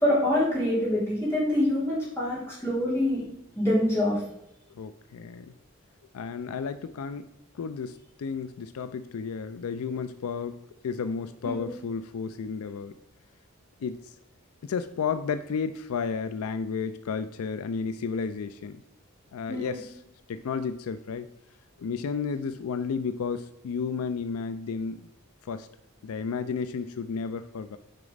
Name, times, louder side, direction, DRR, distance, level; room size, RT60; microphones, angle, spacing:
voice 1, 0.0-3.2 3.6-4.2 11.4-11.7 19.5-19.8, left 1 dB, 10° left, -7 dB, 3.2 m, -25 dB
voice 2, 4.7-5.5 6.1-7.3 7.5-12.9 13.8-14.2 14.6-18.8 19.3-20.0 20.3-21.3 21.8-25.1 25.4-25.7 26.0-27.8, left 5 dB, 80° left, 11 dB, 0.4 m, -32 dB
6.5 x 4.9 x 5.2 m, 0.81 s
head